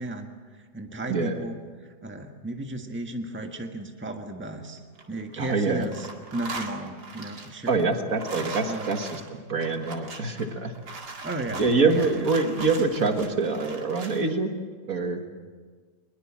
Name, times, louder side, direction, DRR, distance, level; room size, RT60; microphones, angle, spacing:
voice 1, 0.0-1.6 2.0-4.8 5.1-7.8 8.4-9.0 11.2-12.3, right 2 dB, 5° right, 3 dB, 1.5 m, -35 dB
voice 2, 1.1-1.4 5.4-5.9 7.7-10.7 11.6-14.5 14.9-15.2, right 3 dB, 60° right, 5 dB, 2.1 m, -25 dB
sound 1, 4.8-5.5 5.8-14.3, right 3 dB, 85° right, 2.7 m, -40 dB
22.0 x 21.5 x 7.5 m, 1.5 s
omnidirectional pair, 1.7 m